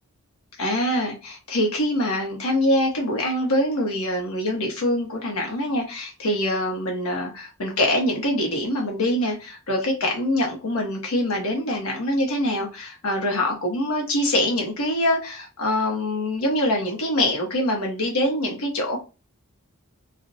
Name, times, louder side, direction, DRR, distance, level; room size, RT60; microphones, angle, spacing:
voice 1, 0.6-19.1, left 1 dB, 75° left, 0.8 m, -24 dB
2.5 x 2.0 x 2.6 m
head